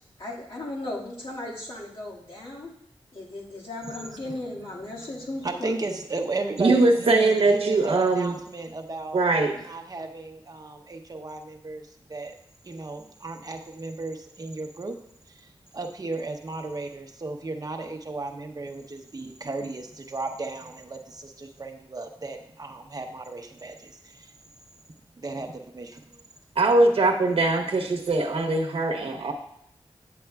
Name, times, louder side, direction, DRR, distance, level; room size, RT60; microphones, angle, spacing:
voice 1, 0.2-2.7 3.1-5.7, left 2 dB, 70° left, -5 dB, 1.9 m, -36 dB
voice 2, 3.8-4.4 5.0-5.1 5.4-9.3 9.6-12.4 12.6-15.0 15.3-24.3 25.2-26.2, right 3 dB, 40° right, 3 dB, 0.8 m, -35 dB
voice 3, 6.6-8.3 9.1-9.6 26.6-29.3, right 2 dB, 85° right, 2 dB, 0.9 m, -21 dB
8.7 x 7.7 x 2.3 m, 0.73 s
wide cardioid pair, 105°, 10 cm